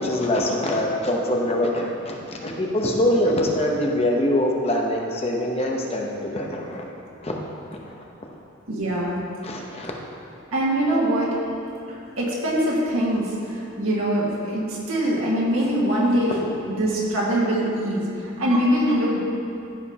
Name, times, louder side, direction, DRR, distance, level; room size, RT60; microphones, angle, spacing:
voice 1, 0.0-6.9 7.2-7.3 7.8-7.9 9.4-9.9, left 1 dB, 30° left, 0 dB, 0.8 m, -24 dB
voice 2, 8.7-9.2 10.5-11.3 11.9-19.2, equal, 90° right, -5 dB, 1.8 m, -23 dB
14.0 x 5.1 x 2.9 m, 2.6 s
head